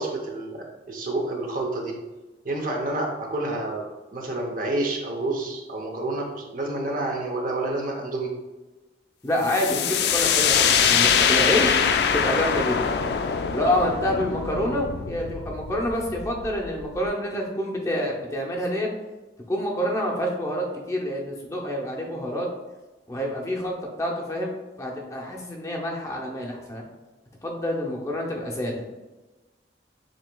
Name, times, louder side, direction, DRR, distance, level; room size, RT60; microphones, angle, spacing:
voice 1, 0.0-1.9 2.4-3.8 4.1-8.3, right 2 dB, 50° right, 1 dB, 0.7 m, -29 dB
voice 2, 9.2-11.8 12.1-13.0 13.5-18.9 19.5-22.5 23.1-26.8 27.4-28.8, left 1 dB, 15° left, -1 dB, 0.6 m, -27 dB
sound 1, 9.5-17.1, left 7 dB, 70° left, 0.3 m, -23 dB
7.4 x 2.9 x 2.2 m, 1.1 s
head